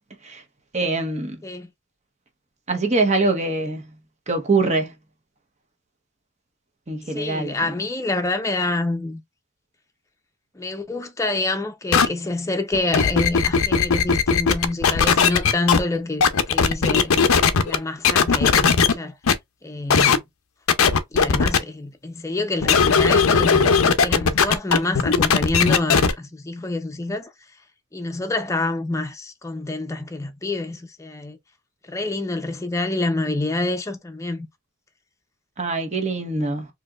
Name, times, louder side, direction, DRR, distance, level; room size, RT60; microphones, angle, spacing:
voice 1, 0.7-1.4 2.7-3.9 4.3-4.9 6.9-7.5 35.6-36.7, right 3 dB, 35° right, 1.0 m, -23 dB
voice 2, 7.1-9.2 10.5-17.1 17.6-19.1 19.6-20.2 21.1-27.3 27.9-31.4 31.9-34.5, left 2 dB, 15° left, 0.6 m, -27 dB
sound 1, 11.9-12.1 12.7-15.8 16.2-17.8 18.0-18.9 19.3-19.4 19.9-20.2 20.7-21.6 22.6-26.1, left 6 dB, 85° left, 0.6 m, -17 dB
4.2 x 2.8 x 2.4 m
head